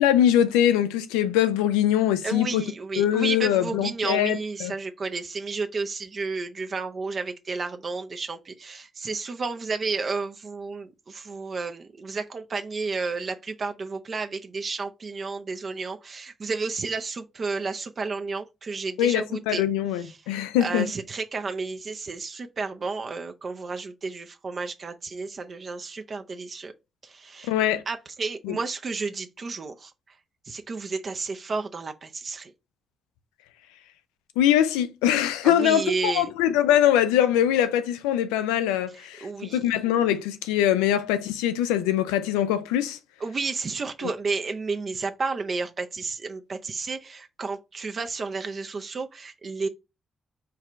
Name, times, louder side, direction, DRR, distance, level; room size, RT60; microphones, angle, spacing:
voice 1, 0.0-2.6 3.0-4.7 19.0-20.9 27.5-27.8 28.4-28.6 34.4-39.3 39.5-43.0, left 11 dB, 90° left, 0.4 m, -22 dB
voice 2, 2.2-19.7 20.0-26.7 27.0-27.5 27.9-30.2 30.4-32.5 35.4-36.3 38.9-39.7 43.2-49.7, right 4 dB, 50° right, 0.5 m, -32 dB
4.6 x 2.4 x 4.3 m
hypercardioid pair, 40°, 0 cm